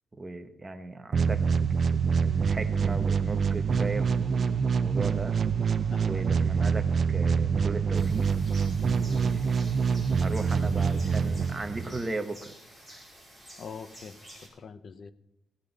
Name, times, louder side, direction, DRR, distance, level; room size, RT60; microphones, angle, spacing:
voice 1, 0.2-1.4 2.1-5.3 6.0-8.3 9.0-9.8 10.2-12.5 12.9-13.0, right 2 dB, 15° right, 6 dB, 1.1 m, -37 dB
sound 1, 1.1-12.1, right 6 dB, 40° right, 0.6 m, -26 dB
voice 2, 5.9-6.6 13.6-15.1, left 5 dB, 50° left, 12 dB, 0.8 m, -45 dB
sound 2, 7.9-14.5, right 1 dB, 10° left, 5.3 m, -50 dB
17.0 x 10.5 x 4.1 m, 0.86 s
cardioid pair, 145°, 0 cm